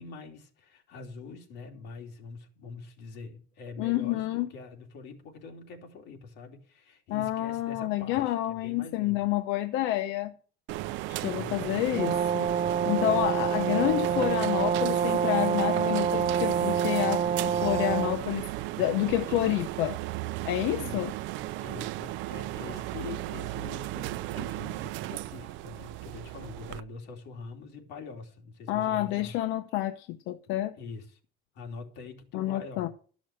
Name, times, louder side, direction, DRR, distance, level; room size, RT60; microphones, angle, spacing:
voice 1, 0.0-9.3 11.4-11.8 20.8-21.1 21.6-29.3 30.8-31.2 31.5-32.9, left 4 dB, 60° left, 2.9 m, -44 dB
voice 2, 3.8-4.5 7.1-10.3 11.1-12.5 12.8-18.4 18.8-20.0 20.4-21.1 28.7-30.7 32.3-32.9, left 14 dB, 85° left, 0.9 m, -29 dB
sound 1, 10.7-26.8, right 16 dB, 85° right, 0.5 m, -35 dB
Brass instrument, 11.9-18.2, right 7 dB, 30° right, 0.9 m, -27 dB
13.0 x 6.1 x 6.4 m
cardioid pair, 175°, 19 cm